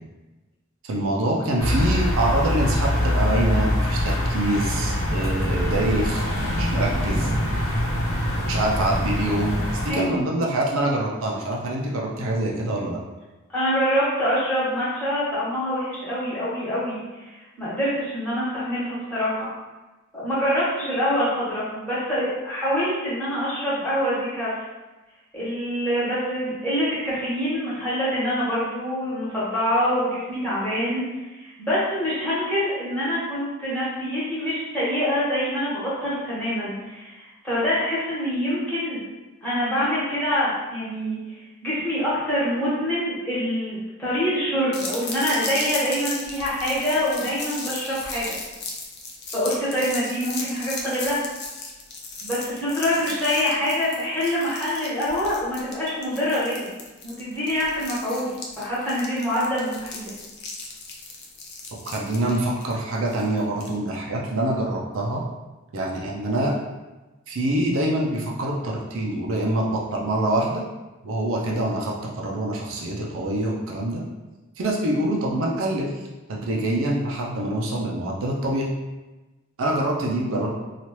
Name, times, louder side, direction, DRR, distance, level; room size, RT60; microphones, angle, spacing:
voice 1, 0.8-6.2 6.6-7.3 8.5-13.0 61.8-65.2 65.7-66.6 67.3-70.6 71.0-74.0 74.6-75.9 76.3-78.7 79.6-80.5, right 1 dB, 75° right, -2 dB, 0.5 m, -25 dB
sound 1, 1.6-9.9, left 1 dB, 90° left, 0.9 m, -24 dB
voice 2, 9.9-10.3 13.5-17.3 17.6-19.5 20.1-24.5 25.3-31.0 31.3-39.0 39.4-48.4 49.3-51.2 52.2-56.7 57.0-58.3 58.6-60.1, equal, 5° left, -11 dB, 1.3 m, -25 dB
sound 2, 44.7-63.8, left 3 dB, 55° left, 0.5 m, -36 dB
2.9 x 2.4 x 3.0 m, 1.1 s
head